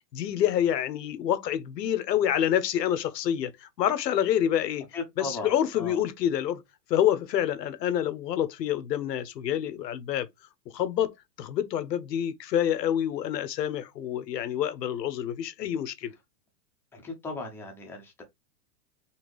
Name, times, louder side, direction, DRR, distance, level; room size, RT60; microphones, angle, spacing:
voice 1, 0.1-4.8 5.2-6.6 6.9-10.3 10.7-16.1, left 10 dB, 85° left, 0.9 m, -27 dB
voice 2, 4.9-6.0 16.9-18.2, left 3 dB, 5° left, 0.5 m, -37 dB
4.2 x 2.8 x 3.1 m
hypercardioid pair, 150°, 48 cm